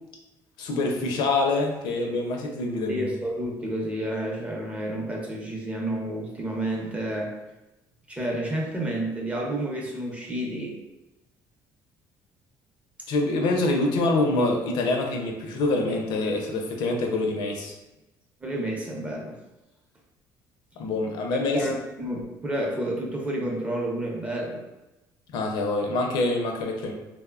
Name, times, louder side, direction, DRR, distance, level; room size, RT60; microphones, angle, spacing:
voice 1, 0.6-3.1 13.1-17.7 20.8-21.7 25.3-26.9, left 2 dB, 75° left, 2 dB, 0.5 m, -25 dB
voice 2, 2.9-7.3 8.1-10.8 18.4-19.4 21.5-24.6, right 1 dB, 15° right, -1 dB, 0.6 m, -30 dB
3.0 x 2.1 x 2.3 m, 1.0 s
cardioid pair, 120°, 8 cm